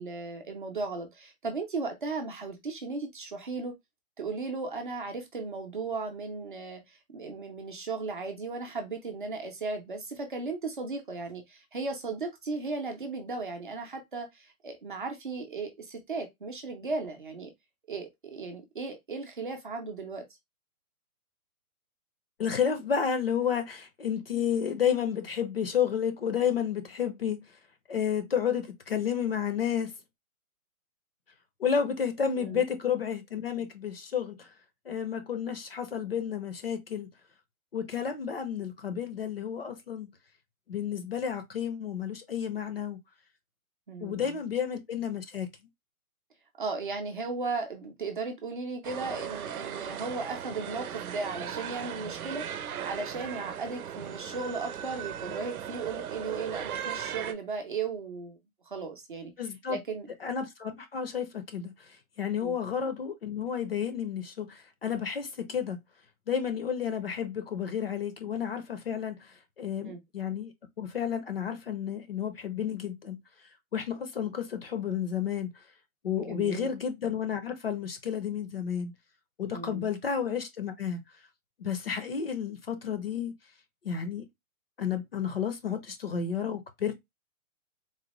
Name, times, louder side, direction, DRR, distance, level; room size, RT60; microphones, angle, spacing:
voice 1, 0.0-3.8 4.2-17.5 17.9-20.2 32.4-32.6 43.9-44.4 46.6-52.5 52.8-58.4 58.7-59.3 59.7-60.1 62.4-62.6 69.8-70.0 76.2-76.7 79.5-79.9, right 4 dB, 35° right, 0.6 m, -36 dB
voice 2, 22.4-27.4 27.9-29.9 31.6-34.5 34.9-37.1 37.7-40.1 40.7-43.0 44.0-45.5 59.4-59.8 60.2-61.7 62.2-65.8 66.3-69.2 69.6-70.5 70.8-73.2 73.7-75.5 76.0-78.9 79.4-81.0 81.6-83.3 83.8-84.3 84.8-86.9, left 8 dB, 45° left, 0.6 m, -31 dB
sound 1, 48.8-57.3, right 9 dB, 80° right, 0.7 m, -38 dB
3.9 x 2.0 x 2.9 m
hypercardioid pair, 175°, 43 cm